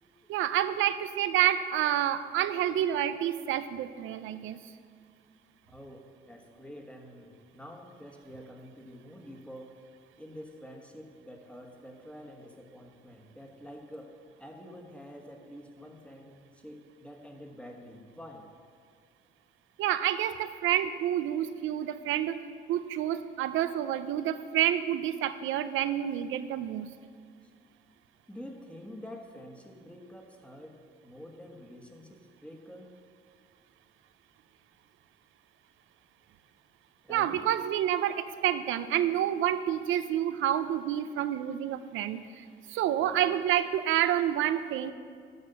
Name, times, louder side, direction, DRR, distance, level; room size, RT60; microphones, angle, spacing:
voice 1, 0.3-4.6 19.8-22.4 22.7-26.9 37.1-44.9, right 11 dB, 85° right, 12 dB, 0.5 m, -28 dB
voice 2, 5.7-9.8 10.2-14.1 14.4-18.5 28.3-32.9 37.1-37.4 43.0-43.4, equal, 5° left, 2 dB, 1.4 m, -47 dB
9.6 x 6.4 x 6.7 m, 2.1 s
cardioid pair, 90°, 20 cm